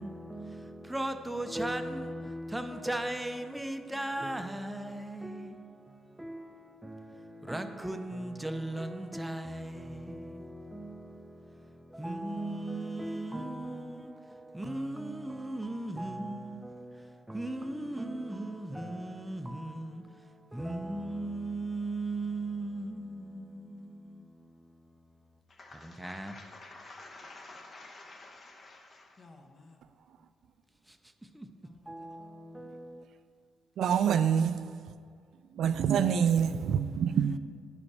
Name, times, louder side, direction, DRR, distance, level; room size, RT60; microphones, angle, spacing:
voice 1, 0.0-24.9 25.7-26.4 30.9-31.0 31.3-31.5 31.9-33.1, right 1 dB, 5° right, 0.5 m, -38 dB
voice 2, 25.5-29.8 31.6-32.2, left 2 dB, 40° left, 1.0 m, -51 dB
voice 3, 33.8-34.8 35.6-37.4, right 8 dB, 70° right, 0.3 m, -26 dB
9.6 x 5.1 x 4.7 m
cardioid pair, 90°, 0 cm